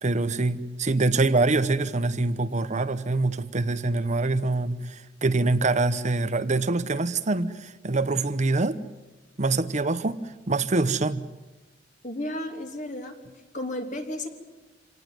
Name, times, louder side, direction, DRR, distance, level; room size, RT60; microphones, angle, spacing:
voice 1, 0.0-8.8 9.4-11.2, right 3 dB, 40° right, 12 dB, 0.9 m, -25 dB
voice 2, 12.0-13.2 13.5-14.3, left 1 dB, 45° left, 4 dB, 3.1 m, -33 dB
26.5 x 19.0 x 9.5 m, 1.2 s
head